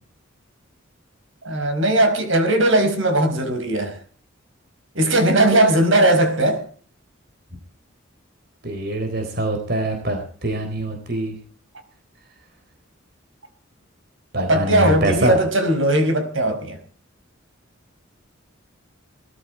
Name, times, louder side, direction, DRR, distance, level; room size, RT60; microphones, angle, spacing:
voice 1, 1.4-4.0 4.9-6.6 14.4-16.8, right 1 dB, 70° right, 5.0 m, -18 dB
voice 2, 8.6-11.4 14.3-15.4, right 1 dB, 50° right, 4.0 m, -24 dB
20.0 x 14.0 x 4.6 m
head